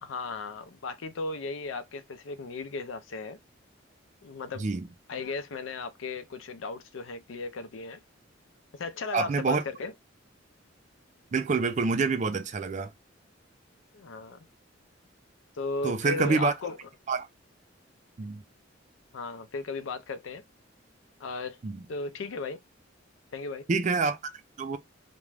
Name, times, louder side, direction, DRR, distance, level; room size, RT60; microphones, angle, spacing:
voice 1, 0.0-3.4 4.2-4.7 5.1-8.0 8.7-9.9 13.9-14.5 15.6-16.8 19.1-20.4 21.2-21.6 21.9-22.6 23.3-23.7, left 3 dB, 80° left, 0.5 m, -36 dB
voice 2, 9.1-9.6 11.3-12.9 15.8-16.5 17.1-17.3 18.2-18.4 21.6-21.8 23.7-24.2 24.6-24.8, right 4 dB, 40° right, 0.4 m, -27 dB
2.5 x 2.2 x 3.1 m
head